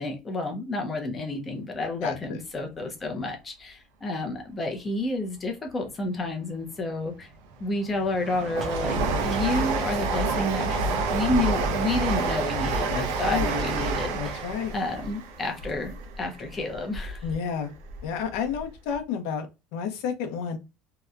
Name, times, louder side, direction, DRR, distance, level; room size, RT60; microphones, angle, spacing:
voice 1, 0.0-7.3 7.6-10.7 11.1-17.2, left 2 dB, 15° left, 3 dB, 0.5 m, -30 dB
voice 2, 2.0-2.4 12.9-13.5 14.2-14.7 17.2-17.7 18.0-20.6, left 7 dB, 65° left, 6 dB, 0.6 m, -31 dB
Train, 7.2-17.3 17.7-18.7 18.9-19.0, right 3 dB, 80° right, 0.6 m, -29 dB
sound 1, 8.6-9.6 10.0-10.2 10.7-11.2 11.4-11.8 12.1-12.3 12.7-13.0 13.5-14.6 14.8-15.1, right 2 dB, 30° right, 0.6 m, -43 dB
2.8 x 2.1 x 2.3 m, 0.26 s
cardioid pair, 180°, 0 cm